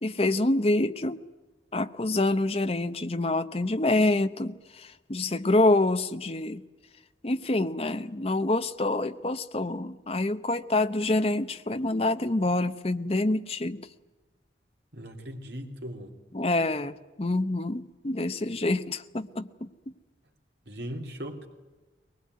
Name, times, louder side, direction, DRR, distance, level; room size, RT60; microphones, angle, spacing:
voice 1, 0.0-1.2 1.7-6.6 7.2-13.8 16.3-19.7, left 2 dB, 30° left, 10 dB, 0.8 m, -26 dB
voice 2, 14.9-16.1 20.7-21.5, equal, 65° right, 3 dB, 3.1 m, -38 dB
22.5 x 20.0 x 9.5 m, 1.2 s
head